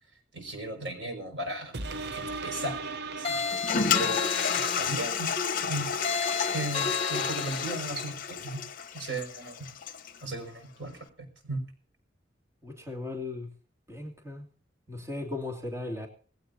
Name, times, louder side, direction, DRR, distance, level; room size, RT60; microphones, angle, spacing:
voice 1, 0.3-1.7 2.1-2.8 3.2-3.4 4.0-5.3 5.6-5.9 6.5-8.6 8.9-9.7 10.2-11.0 11.4-11.6, right 1 dB, 85° right, 4 dB, 6.0 m, -36 dB
sound 1, 1.7-4.7 5.2-5.3, right 3 dB, 65° right, 0.9 m, -38 dB
Toilet flush, 3.2-10.2, left 6 dB, 50° left, 1.0 m, -31 dB
sound 2, 3.2-5.0 6.0-7.8, left 6 dB, 35° left, 3.2 m, -32 dB
voice 2, 12.6-13.5 13.9-14.5 14.9-16.1, left 2 dB, 15° right, 0 dB, 2.7 m, -37 dB
20.0 x 16.5 x 2.8 m, 0.42 s
head